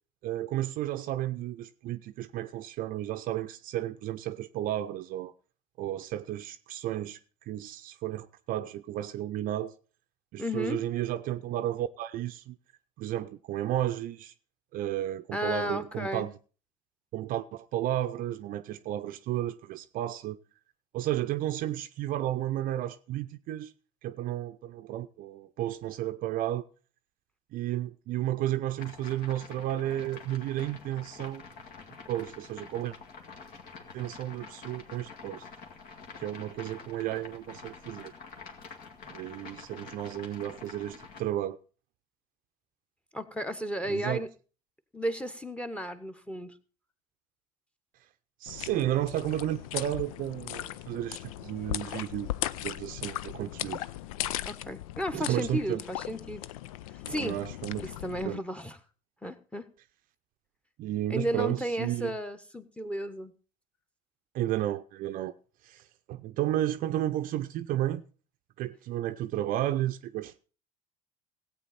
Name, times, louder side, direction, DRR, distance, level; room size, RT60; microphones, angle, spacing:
voice 1, 0.2-5.3 5.8-7.2 7.5-9.7 10.3-12.6 13.0-14.3 14.7-16.3 17.1-20.4 20.9-23.7 24.0-26.6 27.5-31.4 32.1-33.0 33.9-35.5 36.2-38.1 39.1-41.6 43.9-44.2 48.4-52.3 52.6-53.9 55.1-55.8 57.1-57.8 58.2-58.4 60.8-62.1 64.3-65.3 65.6-65.8 66.1-68.0 68.6-70.5, right 13 dB, 50° right, 0.6 m, -32 dB
voice 2, 10.4-10.8 15.3-16.3 43.1-44.3 44.9-46.6 54.4-56.5 56.9-57.4 57.8-58.8 59.2-59.7 61.1-63.3, equal, 5° left, 1.2 m, -34 dB
sound 1, 28.8-41.2, left 5 dB, 55° left, 2.1 m, -47 dB
sound 2, 48.5-58.2, left 14 dB, 70° left, 0.5 m, -38 dB
16.5 x 8.4 x 4.2 m
hypercardioid pair, 75°, 18 cm